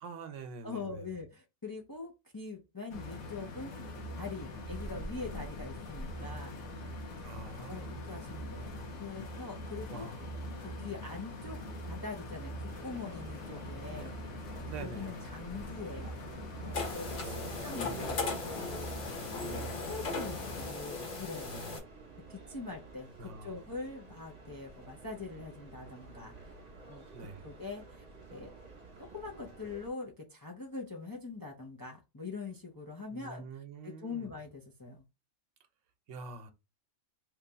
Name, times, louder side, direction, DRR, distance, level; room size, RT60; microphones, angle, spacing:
voice 1, 0.0-1.1 7.2-8.1 9.9-10.3 14.6-15.1 17.2-17.5 17.7-18.5 19.4-19.8 21.5-21.8 23.2-23.6 27.1-27.4 33.1-34.3 36.1-36.5, right 4 dB, 85° right, 1.0 m, -46 dB
voice 2, 0.6-3.7 4.2-6.5 7.7-8.7 9.0-10.1 10.6-11.6 11.9-14.1 14.8-16.2 16.6-18.2 18.4-19.1 19.4-21.6 22.2-26.5 26.9-27.0 27.4-28.0 28.3-28.5 29.0-33.4 33.8-35.0, left 4 dB, 30° left, 0.4 m, -43 dB
sound 1, 2.9-20.7, left 1 dB, 80° left, 1.2 m, -42 dB
sound 2, 12.7-29.9, right 3 dB, 35° right, 1.1 m, -52 dB
sound 3, 16.7-21.8, left 3 dB, 60° left, 1.3 m, -38 dB
3.2 x 2.3 x 3.9 m
omnidirectional pair, 1.2 m